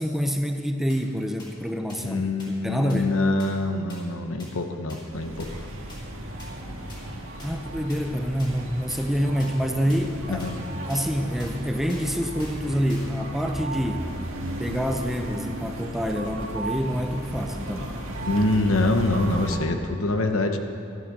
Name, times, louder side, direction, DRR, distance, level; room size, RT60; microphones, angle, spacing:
voice 1, 0.0-2.2 2.5-3.1 7.4-10.5 10.9-14.1 14.6-17.9, equal, ahead, 4 dB, 0.6 m, -27 dB
sound 1, 0.9-1.0 1.4-1.5 1.9-2.0 2.4-2.5 2.9-3.0 3.4-3.5 3.9-4.0 4.4-4.5 4.9-5.0 5.4-5.5 5.9-6.0 6.4-6.5 6.9-7.0 7.4-7.5 7.9-8.0 8.4-8.5 8.9-9.0 9.4-9.5 9.9-10.0 10.4-10.5 10.9-11.0 11.4-11.5 11.9-12.1 12.4-12.6 12.9-13.1 13.4-13.5, left 1 dB, 20° left, 3.0 m, -45 dB
voice 2, 2.0-5.6 10.3-10.5 18.2-20.6, left 2 dB, 80° left, 6 dB, 1.1 m, -25 dB
sound 2, 5.1-19.6, right 1 dB, 70° right, 1.9 m, -35 dB
13.5 x 11.5 x 6.7 m, 2.6 s
head